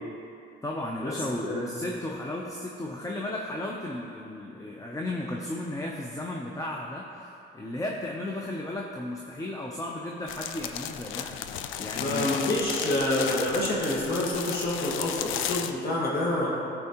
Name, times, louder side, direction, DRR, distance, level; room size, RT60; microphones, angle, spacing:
voice 1, 0.6-12.5, left 1 dB, 15° left, -1 dB, 0.6 m, -34 dB
sound 1, 10.3-15.7, left 9 dB, 85° left, 0.4 m, -34 dB
voice 2, 11.9-16.5, left 1 dB, 50° left, -6 dB, 1.7 m, -27 dB
13.0 x 4.4 x 2.9 m, 2.7 s
cardioid pair, 90°, 20 cm